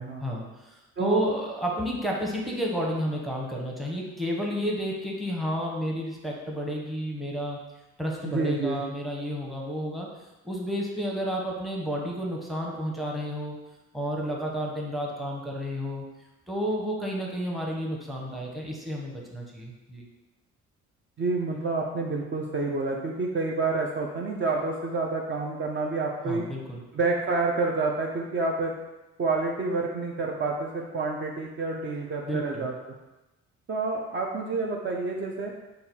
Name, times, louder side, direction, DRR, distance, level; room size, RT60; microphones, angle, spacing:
voice 1, 0.2-7.6 8.0-10.1 10.4-13.6 13.9-16.0 16.5-20.0 26.3-26.8 32.2-32.7, equal, ahead, -2 dB, 0.8 m, -31 dB
voice 2, 8.2-8.8 21.2-26.4 26.9-28.7 29.2-32.7 33.7-35.5, right 3 dB, 40° right, 0 dB, 0.5 m, -28 dB
4.0 x 2.4 x 4.1 m, 1.0 s
cardioid pair, 90°, 30 cm